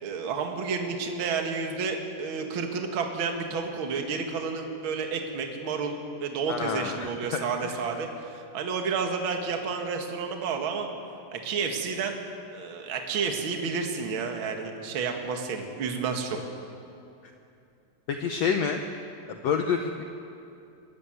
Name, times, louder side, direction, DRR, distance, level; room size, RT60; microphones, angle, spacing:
voice 1, 0.0-10.9 11.3-12.2 12.5-16.4, right 5 dB, 45° right, 3 dB, 1.9 m, -30 dB
voice 2, 6.5-7.1 7.6-7.7 18.1-18.8 19.3-20.0, left 6 dB, 85° left, 5 dB, 1.5 m, -28 dB
23.5 x 13.5 x 9.3 m, 2.6 s
omnidirectional pair, 4.2 m